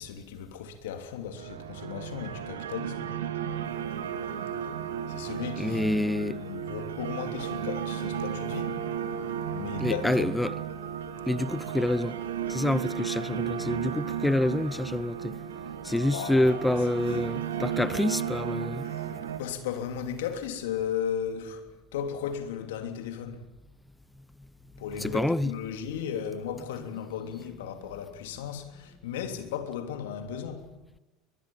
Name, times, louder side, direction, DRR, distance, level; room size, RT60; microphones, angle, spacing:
voice 1, 0.0-3.1 5.1-8.8 9.5-10.3 16.1-17.3 18.8-23.4 24.8-30.7, left 8 dB, 75° left, 3.2 m, -36 dB
sound 1, 1.4-19.4, right 9 dB, 85° right, 2.0 m, -34 dB
voice 2, 5.6-6.4 9.8-10.5 11.3-12.2 12.5-15.4 15.8-18.9 25.0-25.5, left 1 dB, 5° left, 0.8 m, -27 dB
22.0 x 22.0 x 7.4 m
hypercardioid pair, 80°, 0 cm